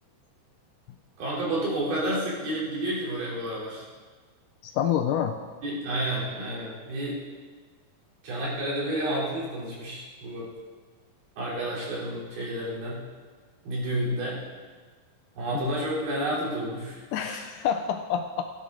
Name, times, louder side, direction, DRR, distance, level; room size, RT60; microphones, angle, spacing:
voice 1, 1.2-3.8 5.6-7.2 8.2-10.5 11.4-13.0 13.6-14.4 15.4-17.4, right 1 dB, 85° right, -6 dB, 5.1 m, -30 dB
voice 2, 4.6-5.4 15.5-15.8 17.1-18.4, left 9 dB, 80° left, 6 dB, 1.9 m, -27 dB
17.0 x 9.6 x 3.7 m, 1.5 s
omnidirectional pair, 4.1 m